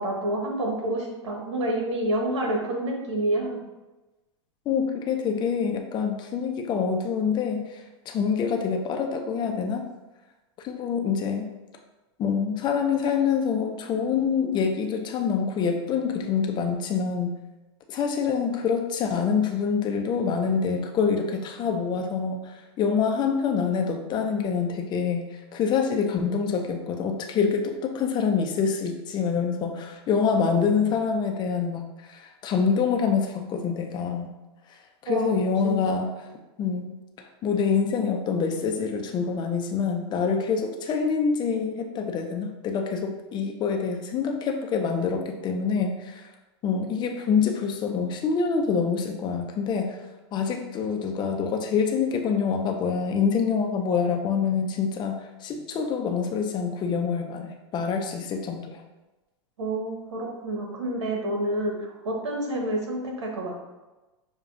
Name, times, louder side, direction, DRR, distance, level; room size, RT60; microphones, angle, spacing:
voice 1, 0.0-3.6 5.3-5.4 35.0-35.8 59.6-63.6, right 1 dB, 80° right, 0 dB, 1.2 m, -28 dB
voice 2, 4.7-9.9 10.6-11.5 12.2-17.3 17.9-25.3 25.5-34.3 35.0-36.3 36.6-36.9 37.4-46.2 46.6-50.0 50.3-58.8, left 6 dB, 30° left, 3 dB, 0.6 m, -26 dB
6.5 x 2.3 x 2.6 m, 1.1 s
hypercardioid pair, 110°, 15 cm